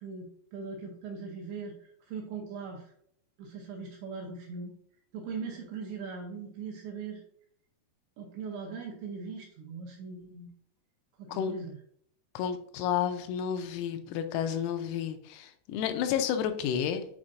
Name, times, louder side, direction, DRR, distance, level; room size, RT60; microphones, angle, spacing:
voice 1, 0.0-2.9 3.4-4.7 5.1-7.2 8.2-10.5 11.2-11.8, right 5 dB, 80° right, 0 dB, 2.7 m, -40 dB
voice 2, 12.3-17.1, left 9 dB, 90° left, 7 dB, 3.3 m, -31 dB
8.7 x 4.3 x 2.5 m, 0.65 s
omnidirectional pair, 5.9 m